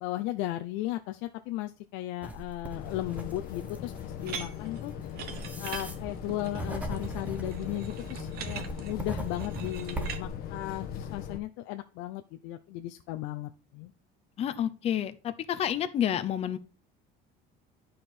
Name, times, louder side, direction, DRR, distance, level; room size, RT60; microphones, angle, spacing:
voice 1, 0.0-4.9 5.6-13.9, left 15 dB, 75° left, 0.6 m, -36 dB
sound 1, 2.2-10.3, right 1 dB, 5° right, 0.9 m, -40 dB
sound 2, 2.7-11.4, left 8 dB, 50° left, 1.1 m, -40 dB
sound 3, 4.2-10.2, right 8 dB, 50° right, 1.1 m, -42 dB
voice 2, 14.4-16.6, left 10 dB, 30° left, 0.6 m, -29 dB
11.0 x 5.1 x 4.3 m
cardioid pair, 170°, 20 cm